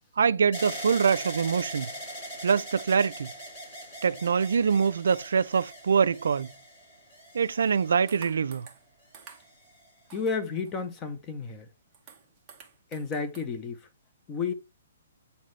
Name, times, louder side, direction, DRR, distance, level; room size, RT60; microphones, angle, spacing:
voice 1, 0.2-1.9 2.4-3.3 4.0-6.5 7.3-8.7, right 6 dB, 70° right, 0.4 m, -24 dB
sound 1, 0.5-8.5 9.2-9.9, equal, 30° left, 3.8 m, -41 dB
sound 2, 8.1-8.9 9.1-9.7 10.1-11.0 11.4-11.5 11.7-13.4, right 6 dB, 10° right, 0.9 m, -51 dB
voice 2, 10.1-11.7 12.9-13.8 14.3-14.5, left 5 dB, 15° left, 0.5 m, -31 dB
8.1 x 4.3 x 3.2 m
hypercardioid pair, 180°, 0 cm